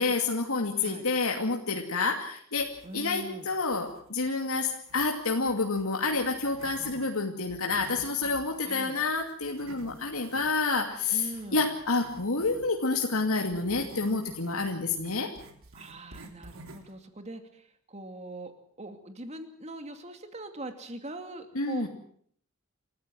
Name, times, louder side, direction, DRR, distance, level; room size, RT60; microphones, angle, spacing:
voice 1, 0.0-15.3 21.5-21.9, left 3 dB, 75° left, 1 dB, 2.6 m, -29 dB
sound 1, 2.5-3.3 3.7-7.0 7.4-12.8 13.5-17.0, right 1 dB, 65° right, 4.0 m, -51 dB
voice 2, 2.8-3.5 8.6-9.0 11.1-11.7 15.7-18.5 18.8-21.9, right 2 dB, 30° right, 6 dB, 2.6 m, -42 dB
29.0 x 14.5 x 7.7 m, 0.63 s
head